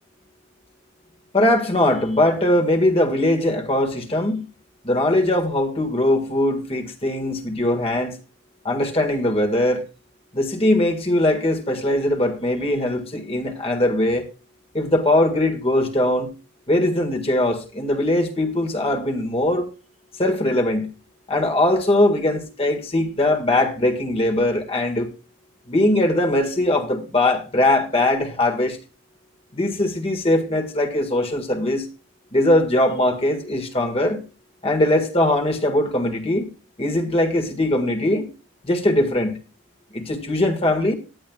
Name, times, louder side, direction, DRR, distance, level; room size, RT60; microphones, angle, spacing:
voice 1, 1.3-4.5 4.8-8.2 8.6-9.8 10.3-14.3 14.7-16.3 16.7-19.7 20.2-20.9 21.3-25.1 25.7-28.8 29.5-31.9 32.3-34.2 34.6-36.5 36.8-38.3 38.6-39.4 39.9-40.9, left 1 dB, 30° left, 1.8 m, -21 dB
18.5 x 11.5 x 2.4 m
head